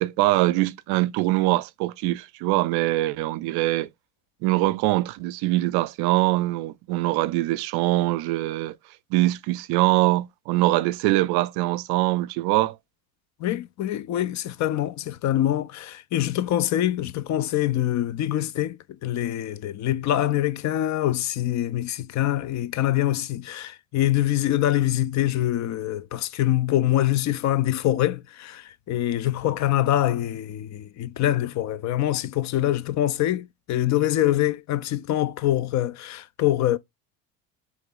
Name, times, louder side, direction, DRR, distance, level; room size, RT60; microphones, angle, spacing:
voice 1, 0.0-3.9 4.4-8.7 9.1-12.8, right 18 dB, 65° right, 0.5 m, -23 dB
voice 2, 13.4-36.8, left 13 dB, 45° left, 0.4 m, -24 dB
3.2 x 2.9 x 3.8 m
supercardioid pair, 85°, 42 cm